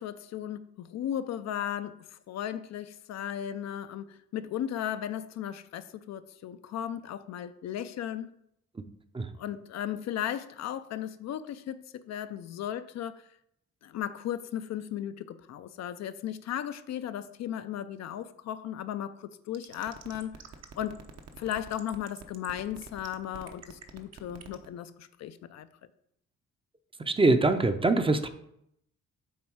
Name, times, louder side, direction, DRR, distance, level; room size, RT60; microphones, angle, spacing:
voice 1, 0.0-8.3 9.4-13.2 13.8-20.4 20.8-21.1 21.3-25.7, left 10 dB, 60° left, 0.4 m, -36 dB
sound 1, 19.5-24.7, right 7 dB, 55° right, 0.8 m, -46 dB
voice 2, 27.0-28.3, right 2 dB, 20° right, 0.5 m, -23 dB
7.3 x 3.5 x 4.6 m
cardioid pair, 90°, 30 cm